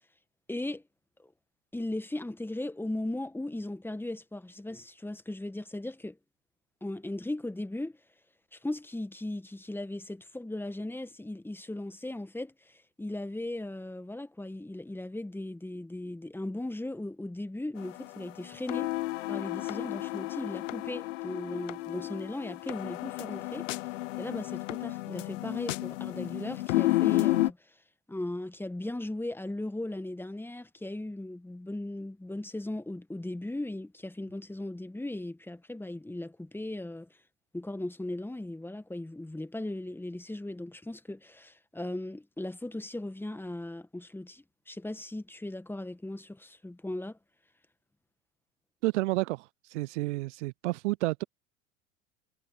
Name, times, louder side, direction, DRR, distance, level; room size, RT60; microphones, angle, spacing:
voice 1, 0.5-0.8 1.2-1.3 1.7-6.2 6.8-7.9 8.5-18.9 19.3-23.7 24.2-27.6 28.1-37.1 37.5-47.2, left 1 dB, 5° left, 1.8 m, -37 dB
sound 1, 17.8-27.5, left 19 dB, 70° left, 0.5 m, -32 dB
voice 2, 48.8-51.2, right 20 dB, 65° right, 0.6 m, -30 dB
hypercardioid pair, 80°, 39 cm